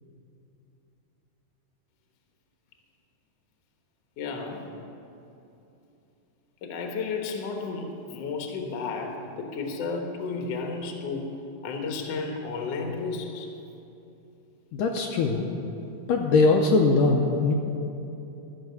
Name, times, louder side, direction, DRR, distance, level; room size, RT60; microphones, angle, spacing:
voice 1, 4.2-4.6 6.6-11.4 11.6-13.5, left 4 dB, 60° left, 3 dB, 1.9 m, -32 dB
voice 2, 14.7-15.5 16.1-17.5, left 3 dB, 75° left, 1 dB, 2.1 m, -21 dB
14.0 x 6.7 x 8.1 m, 2.9 s
omnidirectional pair, 4.1 m